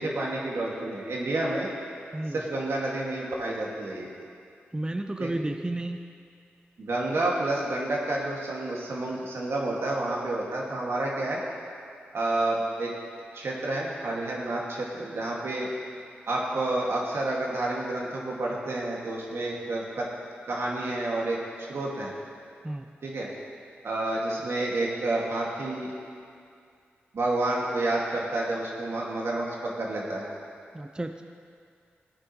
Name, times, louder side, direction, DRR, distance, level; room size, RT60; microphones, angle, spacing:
voice 1, 0.0-1.7 2.3-4.1 5.2-5.3 6.8-11.4 12.1-12.9 13.3-15.7 16.3-20.1 20.5-21.4 21.7-22.1 23.0-23.3 23.8-25.9 27.1-30.3, right 2 dB, 70° right, -3 dB, 2.0 m, -29 dB
voice 2, 4.7-6.1 22.6-22.9 30.7-31.2, right 1 dB, 20° right, 6 dB, 0.5 m, -32 dB
16.5 x 8.9 x 3.1 m, 2.3 s
cardioid pair, 40°, 4 cm